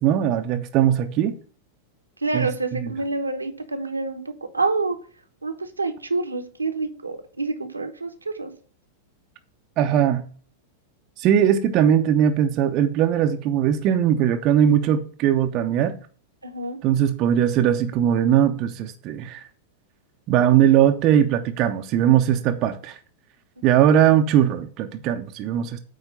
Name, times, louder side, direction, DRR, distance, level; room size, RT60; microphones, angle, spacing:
voice 1, 0.0-1.3 2.3-2.9 9.8-10.2 11.2-15.9 16.8-19.4 20.3-23.0 23.6-25.8, right 10 dB, 40° right, 0.6 m, -20 dB
voice 2, 2.2-5.0 5.4-8.5 16.4-16.8, right 3 dB, 85° right, 1.0 m, -27 dB
8.7 x 3.2 x 5.2 m
figure-of-eight pair, 95°, 0 cm